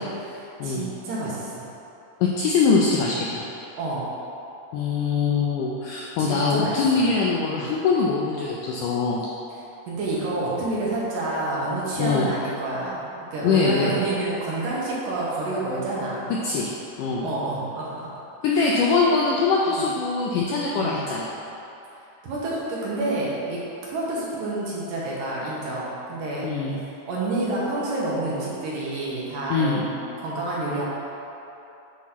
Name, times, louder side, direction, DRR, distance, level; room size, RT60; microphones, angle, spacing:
voice 1, 0.0-1.7 3.8-4.1 6.2-7.1 7.5-7.7 9.9-16.3 17.2-18.1 18.5-18.8 19.7-19.9 20.7-21.0 22.2-23.6 23.9-26.5 27.1-30.9, right 2 dB, 70° right, -6 dB, 2.7 m, -29 dB
voice 2, 2.2-3.4 4.7-9.3 12.0-12.3 13.4-13.9 16.4-16.7 17.0-17.3 18.4-21.3 26.4-26.8 29.5-29.8, left 4 dB, 90° left, -4 dB, 1.8 m, -22 dB
7.9 x 3.1 x 5.9 m, 2.9 s
omnidirectional pair, 4.3 m